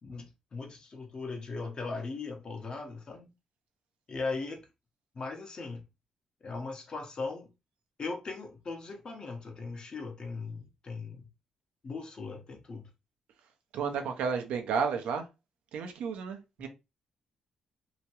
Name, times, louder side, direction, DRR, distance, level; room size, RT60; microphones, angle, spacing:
voice 1, 0.0-3.3 4.1-4.6 5.1-5.8 6.4-7.5 8.0-11.3 11.8-12.9, left 3 dB, 45° left, 0.9 m, -38 dB
voice 2, 13.7-15.2 15.7-16.7, right 6 dB, 85° right, 0.6 m, -32 dB
2.8 x 2.3 x 2.9 m
cardioid pair, 80°, 2 cm